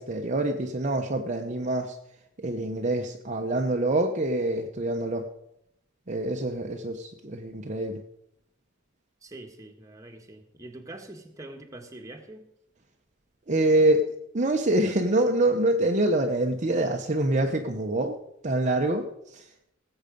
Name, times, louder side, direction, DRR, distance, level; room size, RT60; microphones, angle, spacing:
voice 1, 0.0-2.0 2.4-5.3 6.1-8.0 13.5-14.1 14.3-18.2 18.4-19.0 19.3-19.5, right 1 dB, 35° right, 2 dB, 0.9 m, -25 dB
voice 2, 9.2-12.5, right 2 dB, 15° right, 3 dB, 1.6 m, -44 dB
19.0 x 8.1 x 5.2 m, 0.81 s
head